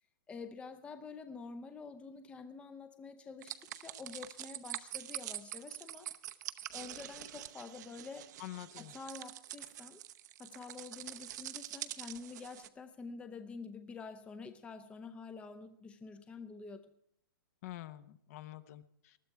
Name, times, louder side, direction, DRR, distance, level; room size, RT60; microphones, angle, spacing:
voice 1, 0.3-6.1 6.7-8.3 8.8-10.0 10.4-16.9, left 4 dB, 10° left, 9 dB, 0.7 m, -48 dB
sound 1, 3.4-12.7, right 13 dB, 50° right, 0.8 m, -45 dB
voice 2, 8.4-9.0 17.6-19.2, left 15 dB, 40° left, 14 dB, 0.9 m, -47 dB
19.5 x 13.0 x 4.6 m, 0.69 s
hypercardioid pair, 145°, 12 cm